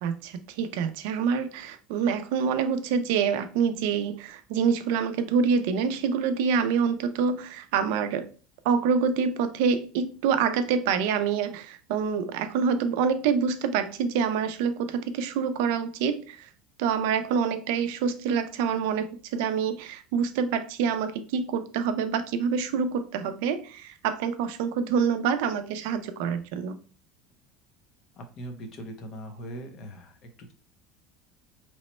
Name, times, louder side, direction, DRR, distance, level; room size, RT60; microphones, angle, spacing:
voice 1, 0.0-8.3 8.6-16.5 16.8-26.8, right 6 dB, 70° right, 0.4 m, -26 dB
voice 2, 28.1-30.5, right 1 dB, 35° left, 0.6 m, -41 dB
3.0 x 2.1 x 4.1 m
cardioid pair, 175°, 0 cm